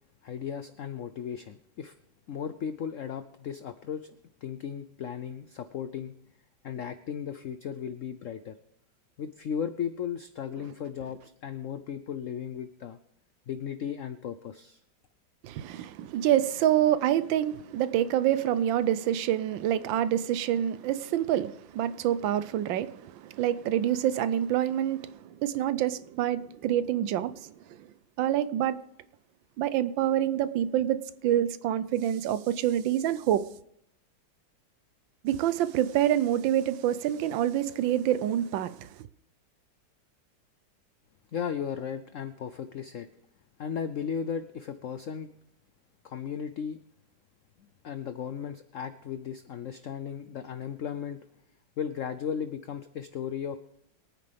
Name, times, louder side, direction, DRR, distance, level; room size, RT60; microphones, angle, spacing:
voice 1, 0.2-1.9 2.3-4.2 4.4-6.1 6.6-8.6 9.2-13.0 13.5-14.8 41.3-43.1 43.6-45.3 46.0-46.8 47.8-51.2 51.8-53.6, left 8 dB, 85° left, 0.7 m, -36 dB
voice 2, 15.4-27.9 28.2-28.8 29.6-31.0 31.2-33.5 35.2-39.1, right 11 dB, 80° right, 1.4 m, -27 dB
23.5 x 9.2 x 3.4 m
omnidirectional pair, 2.1 m